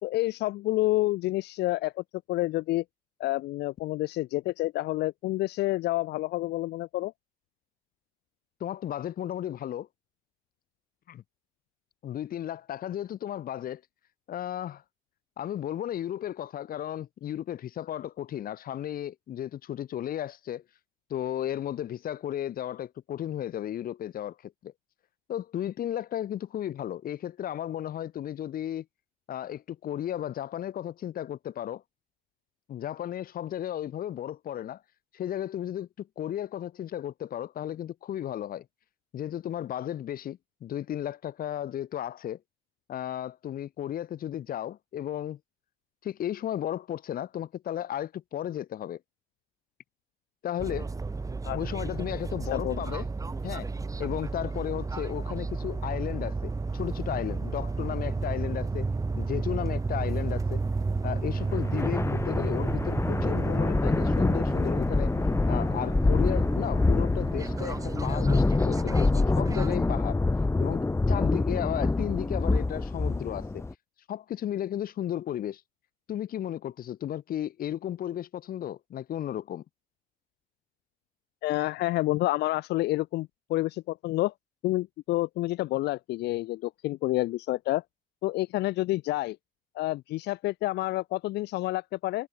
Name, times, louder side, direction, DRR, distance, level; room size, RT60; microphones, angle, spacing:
voice 1, 0.0-2.8 3.2-7.1 51.4-51.6 52.5-52.8 81.4-84.3 84.6-87.8 88.2-89.4 89.7-92.3, left 17 dB, 80° left, 1.2 m, -29 dB
voice 2, 8.6-9.9 11.1-11.2 12.0-13.8 14.3-14.8 15.4-20.6 21.1-24.7 25.3-28.9 29.3-31.8 32.7-34.8 35.1-38.7 39.1-42.4 42.9-45.4 46.0-49.0 50.4-50.9 51.5-53.1 53.4-53.7 54.0-58.9 59.2-60.6 61.0-65.1 65.5-70.2 70.6-73.6 74.1-75.6 76.1-79.6, left 11 dB, 60° left, 5.5 m, -34 dB
sound 1, 50.6-69.8, right 3 dB, 20° right, 3.0 m, -32 dB
sound 2, 61.5-73.7, left 3 dB, 15° left, 4.0 m, -26 dB
cardioid pair, 110°, 17 cm